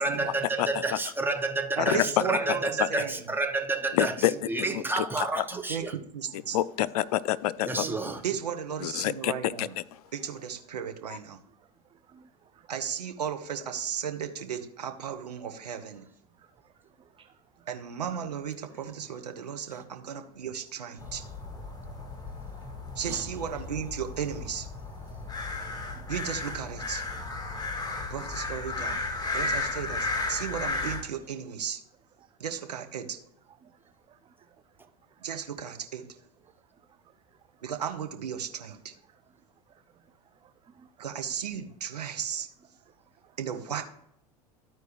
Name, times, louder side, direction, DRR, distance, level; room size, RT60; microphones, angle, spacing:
voice 1, 0.0-4.1 4.5-5.9 7.6-8.2 23.0-23.2, right 3 dB, 10° right, 4 dB, 1.2 m, -30 dB
voice 2, 0.6-1.0 1.8-2.2 2.8-2.9 3.9-4.3 4.7-5.5 6.3-7.8 8.8-10.0 11.1-11.2, left 13 dB, 70° left, 19 dB, 0.5 m, -28 dB
voice 3, 1.8-2.6 2.9-3.2 5.7-5.8 6.1-6.6 8.2-9.7 10.1-11.4 12.7-16.0 17.7-21.2 23.0-24.7 26.1-27.0 28.1-29.0 29.3-31.8 32.4-33.2 35.2-36.0 37.6-38.9 41.0-42.5 43.4-43.8, right 8 dB, 85° right, 5 dB, 0.9 m, -35 dB
voice 4, 11.9-12.7 16.4-16.7 17.2-17.3 17.6-17.7 18.1-18.2 20.8-20.9 25.9-26.1 27.5-27.7 33.6-33.7 34.1-34.3 35.2-35.3 38.6-38.8 40.4-41.1 42.9-43.0, right 10 dB, 25° right, 10 dB, 0.4 m, -47 dB
sound 1, 21.0-31.0, left 3 dB, 20° left, 1.8 m, -34 dB
13.5 x 4.6 x 3.0 m, 0.75 s
hypercardioid pair, 85°, 20 cm